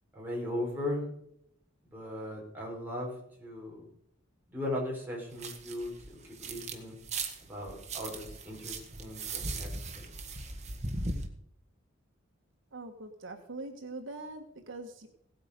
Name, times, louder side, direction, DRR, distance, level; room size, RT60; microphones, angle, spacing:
voice 1, 0.1-1.0 1.9-3.8 4.5-6.2 6.4-7.0 7.5-10.0, left 1 dB, 10° right, -3 dB, 4.8 m, -38 dB
sound 1, 5.3-6.8 7.0-11.3, right 3 dB, 35° right, 1.7 m, -38 dB
voice 2, 12.7-15.1, right 2 dB, 70° right, 4 dB, 1.4 m, -43 dB
17.0 x 8.7 x 5.2 m, 0.74 s
head